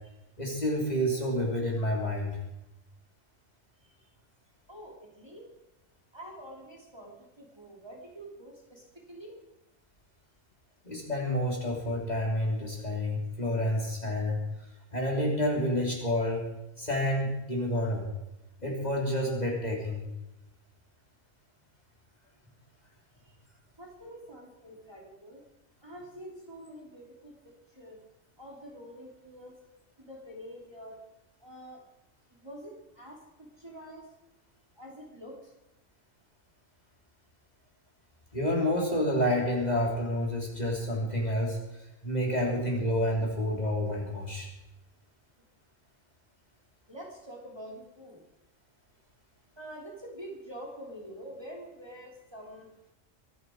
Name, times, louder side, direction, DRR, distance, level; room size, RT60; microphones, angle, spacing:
voice 1, 0.4-2.4 10.9-14.4 14.9-16.4 16.8-18.1 18.6-20.1 38.3-41.6 42.0-44.5, equal, 30° left, -2 dB, 3.5 m, -29 dB
voice 2, 4.7-5.5 6.1-9.4 23.8-25.4 25.8-28.0 28.4-29.5 30.0-31.0 31.4-31.8 32.3-34.1 34.8-35.5 46.9-48.2 49.6-52.7, equal, 20° right, -2 dB, 3.3 m, -46 dB
23.5 x 10.5 x 4.7 m, 0.91 s
omnidirectional pair, 1.3 m